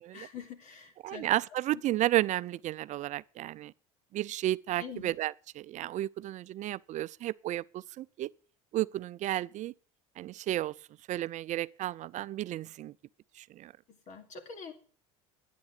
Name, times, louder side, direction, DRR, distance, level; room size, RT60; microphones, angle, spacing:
voice 1, 0.1-1.3 1.7-1.8 4.8-5.1 14.1-14.7, left 6 dB, 50° left, 3.4 m, -45 dB
voice 2, 1.0-3.7 4.1-8.3 8.7-9.7 10.2-10.8 11.1-12.9 13.4-13.7, right 14 dB, 50° right, 0.5 m, -32 dB
10.5 x 9.3 x 8.5 m
supercardioid pair, 90°, 16 cm